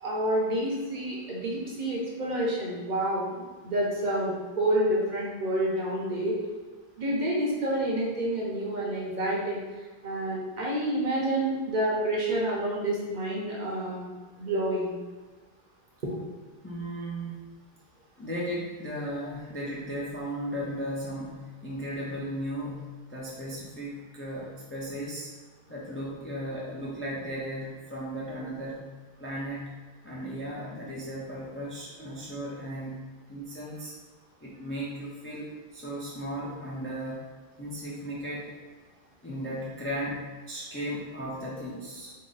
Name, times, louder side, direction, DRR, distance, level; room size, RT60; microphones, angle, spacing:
voice 1, 0.0-6.4 7.0-9.6 10.0-14.1 14.4-14.9 16.0-16.2, right 1 dB, 50° right, -4 dB, 0.8 m, -28 dB
voice 2, 16.6-17.4 18.2-25.3 25.7-28.8 29.2-29.7 30.0-33.0 33.3-33.9 34.4-37.2 37.6-38.5 39.2-42.1, equal, 20° left, -6 dB, 0.4 m, -36 dB
3.7 x 2.0 x 3.9 m, 1.3 s
omnidirectional pair, 1.1 m